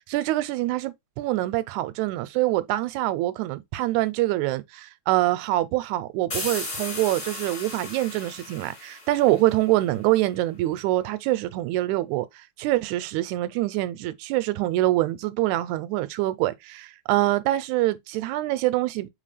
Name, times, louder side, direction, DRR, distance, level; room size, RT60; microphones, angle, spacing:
voice 1, 0.1-12.3 12.6-19.1, right 16 dB, 90° right, 2.0 m, -25 dB
sound 1, 6.3-9.9, left 2 dB, 25° left, 1.9 m, -36 dB
4.0 x 3.9 x 3.2 m
omnidirectional pair, 3.3 m